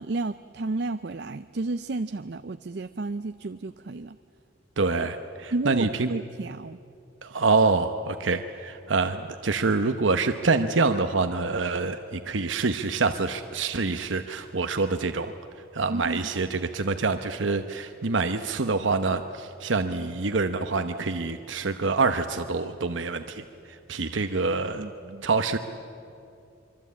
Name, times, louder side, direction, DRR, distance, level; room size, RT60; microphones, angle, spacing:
voice 1, 0.0-4.2 5.5-6.8 15.9-16.2 24.8-25.2, right 2 dB, 55° right, 11 dB, 0.5 m, -32 dB
voice 2, 4.8-6.1 7.2-15.3 15.7-24.9 25.2-25.6, right 3 dB, 80° right, 8 dB, 0.9 m, -26 dB
24.5 x 24.0 x 8.5 m, 2.6 s
head